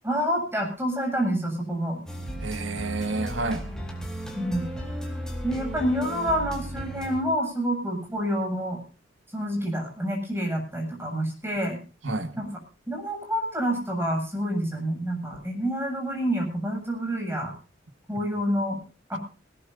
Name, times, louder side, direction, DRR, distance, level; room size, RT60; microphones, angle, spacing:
voice 1, 0.0-2.0 4.3-4.7 5.4-8.8 9.3-11.8 12.4-12.5 12.9-17.5 18.1-18.8 19.1-19.2, equal, 10° right, 1 dB, 7.9 m, -28 dB
sound 1, 2.1-7.2, equal, 5° left, 3.8 m, -35 dB
voice 2, 2.4-3.6 12.0-12.5, right 2 dB, 80° right, 10 dB, 1.9 m, -30 dB
20.0 x 19.0 x 2.7 m, 0.34 s
head